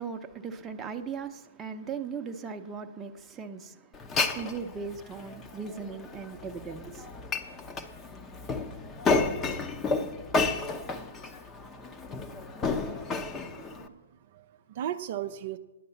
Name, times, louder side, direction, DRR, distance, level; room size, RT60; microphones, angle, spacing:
voice 1, 0.0-3.9 4.3-7.0, right 5 dB, 15° right, 0.8 m, -38 dB
Glass, 3.9-13.9, left 3 dB, 20° left, 0.8 m, -32 dB
voice 2, 13.4-15.6, right 11 dB, 50° right, 0.5 m, -37 dB
10.0 x 8.5 x 7.1 m
hypercardioid pair, 130°, 0 cm